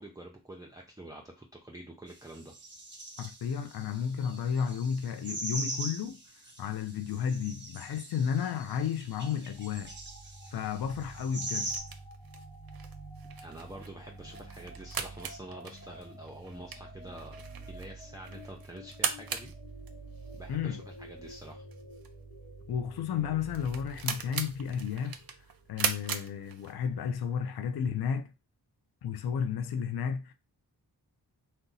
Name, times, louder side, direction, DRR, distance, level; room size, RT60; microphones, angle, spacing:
voice 1, 0.0-2.6 13.2-17.4 17.7-19.5 20.3-21.6 27.9-28.0, right 1 dB, 10° right, 0.5 m, -47 dB
sound 1, 2.1-2.2 2.4-11.8, right 1 dB, 25° right, 1.0 m, -41 dB
voice 2, 3.2-6.2 6.6-9.9 10.5-11.7 20.5-20.8 22.7-25.2 25.7-28.2 29.0-30.3, left 7 dB, 65° left, 0.5 m, -32 dB
sound 2, 9.5-25.9, right 2 dB, 90° left, 0.9 m, -48 dB
sound 3, 11.4-27.1, right 7 dB, 60° right, 0.5 m, -40 dB
2.6 x 2.2 x 3.8 m
cardioid pair, 55°, 41 cm